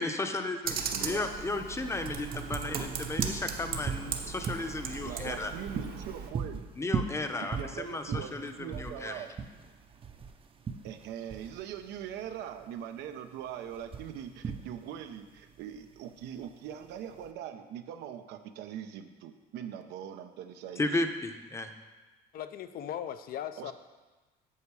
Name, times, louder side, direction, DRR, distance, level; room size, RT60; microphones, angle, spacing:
voice 1, 0.0-5.5 6.8-9.2 20.8-21.7, left 2 dB, 15° left, 7 dB, 0.7 m, -34 dB
Computer keyboard, 0.6-6.3, right 6 dB, 60° right, 1.0 m, -37 dB
voice 2, 0.9-1.3 5.0-6.7 7.4-9.3 10.8-21.0 23.6-23.7, right 9 dB, 85° right, 8 dB, 0.7 m, -42 dB
sound 1, 1.7-17.3, right 6 dB, 30° right, 0.6 m, -39 dB
voice 3, 22.3-23.7, left 10 dB, 60° left, 11 dB, 0.5 m, -38 dB
8.5 x 6.8 x 4.7 m, 1.2 s
cardioid pair, 110°, 17 cm